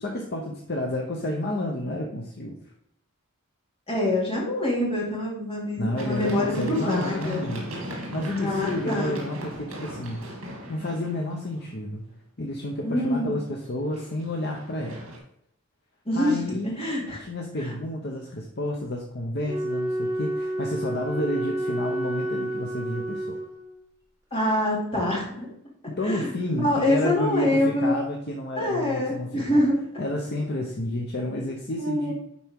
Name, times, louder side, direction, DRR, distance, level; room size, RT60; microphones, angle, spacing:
voice 1, 0.0-2.6 5.8-7.6 8.1-10.2 10.7-12.0 12.4-15.0 16.1-16.9 17.2-23.4 25.9-29.6 30.0-32.1, left 1 dB, 50° left, 0 dB, 0.8 m, -30 dB
voice 2, 3.9-7.5 8.4-9.1 12.8-13.3 16.1-17.2 17.6-17.7 24.3-25.5 26.0-28.0 28.6-29.8 31.8-32.1, left 1 dB, 25° left, -4 dB, 2.5 m, -25 dB
Run, 6.0-11.8 13.7-15.2, right 1 dB, 75° right, 2.4 m, -38 dB
Wind instrument woodwind instrument, 19.4-23.9, right 1 dB, 15° right, 1.8 m, -30 dB
10.5 x 4.4 x 3.6 m, 0.74 s
head